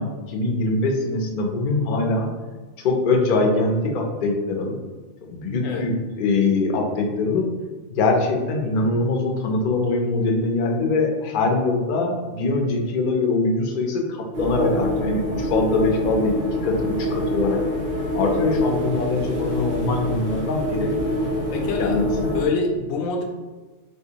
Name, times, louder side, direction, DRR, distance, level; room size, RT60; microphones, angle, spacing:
voice 1, 0.0-2.3 2.8-4.7 5.2-7.5 7.9-17.6 18.1-20.9 21.8-22.3, left 3 dB, 60° left, 1 dB, 0.5 m, -23 dB
sound 1, 14.3-22.5, left 1 dB, 45° right, 0.8 m, -25 dB
voice 2, 21.5-22.0 22.3-23.2, left 4 dB, 90° left, 2 dB, 1.0 m, -25 dB
3.4 x 2.7 x 2.8 m, 1.3 s
omnidirectional pair, 1.3 m